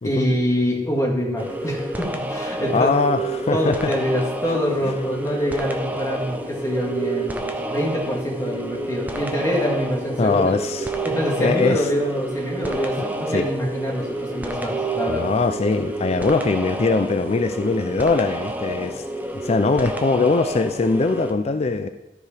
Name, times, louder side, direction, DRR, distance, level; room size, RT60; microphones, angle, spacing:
voice 1, 0.0-2.9 3.5-7.4 7.7-10.4 11.0-15.2, equal, 15° left, -2 dB, 1.8 m, -25 dB
sound 1, 1.4-21.3, right 1 dB, 10° right, 0.7 m, -30 dB
sound 2, 1.5-17.9, right 6 dB, 30° right, 2.0 m, -35 dB
voice 2, 2.7-3.8 4.8-4.9 10.2-10.9 11.4-11.9 13.3-13.5 15.1-19.0 19.4-21.9, left 3 dB, 35° left, 8 dB, 0.4 m, -21 dB
13.0 x 4.8 x 4.9 m, 1.0 s
head